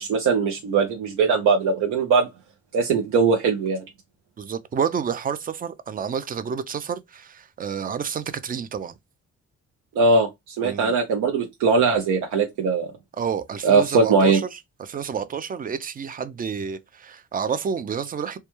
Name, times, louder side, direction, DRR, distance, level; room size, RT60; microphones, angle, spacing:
voice 1, 0.0-2.3 2.7-3.8 10.0-12.9 13.6-14.4, right 4 dB, 85° right, 0.6 m, -20 dB
voice 2, 4.4-9.0 10.6-11.0 13.2-18.4, right 7 dB, 30° right, 0.4 m, -29 dB
2.2 x 2.2 x 3.0 m
cardioid pair, 90°, 30 cm